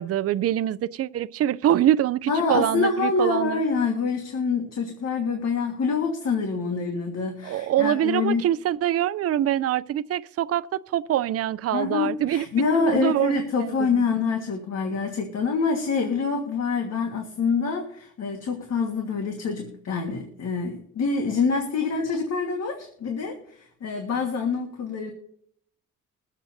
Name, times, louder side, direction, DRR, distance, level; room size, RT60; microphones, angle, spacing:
voice 1, 0.0-3.6 7.4-12.5 12.8-13.3 13.7-13.9, right 11 dB, 50° right, 0.5 m, -24 dB
voice 2, 2.3-8.5 11.7-25.1, left 5 dB, 60° left, 1.6 m, -26 dB
22.0 x 7.4 x 2.7 m
cardioid pair, 90°, 30 cm